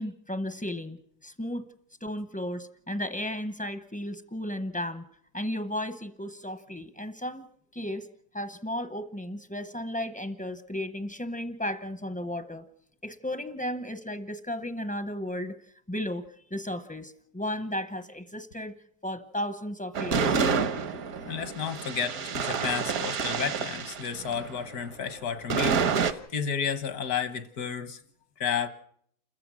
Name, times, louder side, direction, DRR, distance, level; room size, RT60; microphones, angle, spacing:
voice 1, 0.0-1.6 2.0-5.0 5.3-7.5 7.7-8.1 8.3-12.6 13.0-15.5 15.9-16.2 16.5-18.7 19.0-20.4, left 1 dB, 10° left, 9 dB, 0.4 m, -34 dB
sound 1, 19.9-24.8 25.5-26.1, right 5 dB, 75° right, 1.5 m, -28 dB
voice 2, 21.2-28.0 28.4-28.7, left 7 dB, 80° left, 11 dB, 1.7 m, -32 dB
29.0 x 14.5 x 6.2 m, 0.67 s
omnidirectional pair, 1.6 m